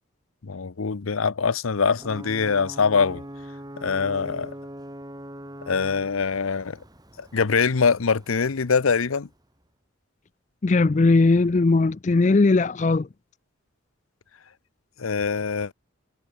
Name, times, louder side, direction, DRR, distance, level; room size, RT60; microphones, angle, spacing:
voice 1, 0.4-3.2 3.8-4.5 5.7-6.8 7.2-9.3 15.0-15.7, left 5 dB, 90° left, 0.7 m, -23 dB
Ocean / Boat Water vehicle / Alarm, 1.9-9.5, right 1 dB, 20° right, 4.6 m, -42 dB
voice 2, 10.6-13.1, left 3 dB, 35° left, 0.4 m, -19 dB
head